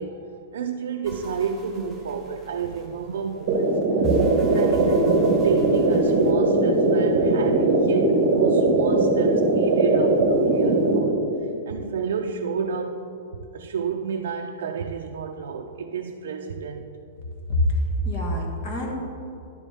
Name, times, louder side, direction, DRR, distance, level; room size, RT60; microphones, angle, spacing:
voice 1, 0.0-3.8 4.1-11.2 11.7-13.1 13.5-16.9, right 6 dB, 75° right, 2 dB, 0.4 m, -31 dB
sound 1, 1.0-6.3, equal, ahead, 0.7 m, -36 dB
sound 2, 3.5-11.0, right 2 dB, 35° right, 1.2 m, -20 dB
voice 2, 17.5-18.9, left 1 dB, 30° left, 1 dB, 1.4 m, -25 dB
10.5 x 7.0 x 3.5 m, 2.8 s
supercardioid pair, 175°, 0 cm